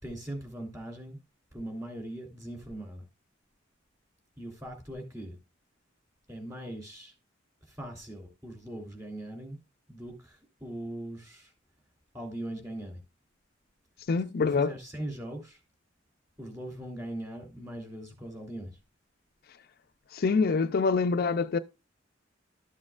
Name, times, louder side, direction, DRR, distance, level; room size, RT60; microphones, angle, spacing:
voice 1, 0.0-1.2 1.5-3.0 4.4-5.4 6.3-7.1 7.7-9.6 9.9-11.5 12.1-13.0 14.4-15.6 16.4-18.8, right 1 dB, 15° right, 3.0 m, -40 dB
voice 2, 14.1-14.7 20.1-21.6, left 4 dB, 50° left, 0.4 m, -25 dB
12.5 x 7.4 x 2.4 m
head